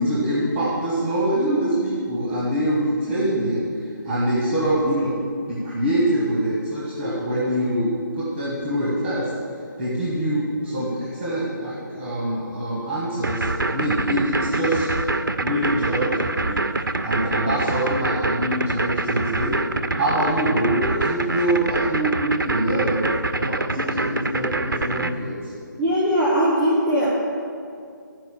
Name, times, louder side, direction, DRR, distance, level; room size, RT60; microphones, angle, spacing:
voice 1, 0.0-3.6 4.1-5.1 5.5-9.3 9.8-14.9 15.4-16.6 17.0-19.6 19.9-25.5, right 1 dB, 10° right, -7 dB, 1.8 m, -24 dB
sound 1, 13.2-25.1, right 2 dB, 75° right, 0.6 m, -25 dB
voice 2, 25.8-27.1, equal, 25° left, -11 dB, 2.2 m, -20 dB
13.5 x 4.9 x 6.6 m, 2.3 s
figure-of-eight pair, 145°, 11 cm